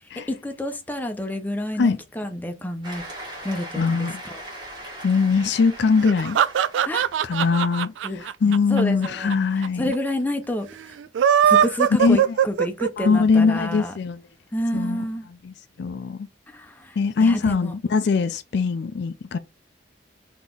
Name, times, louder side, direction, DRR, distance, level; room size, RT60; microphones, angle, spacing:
voice 1, 0.3-3.0 3.4-4.4 6.9-7.1 8.0-9.3 9.8-10.9 11.4-13.9 14.5-15.3 16.5-17.8, left 1 dB, 10° left, 0.6 m, -29 dB
Cheering / Applause, 2.8-7.8, right 1 dB, 25° right, 1.9 m, -40 dB
voice 2, 3.8-4.2 5.0-6.4 7.2-7.9 8.2-9.9 12.0-12.4 13.0-14.2 14.7-15.0 15.4-16.3 17.0-19.4, left 4 dB, 65° left, 0.4 m, -21 dB
sound 1, 6.0-9.3 9.6-9.7 9.9-10.0 11.0-13.1, right 9 dB, 90° right, 0.3 m, -20 dB
4.0 x 2.9 x 3.7 m
head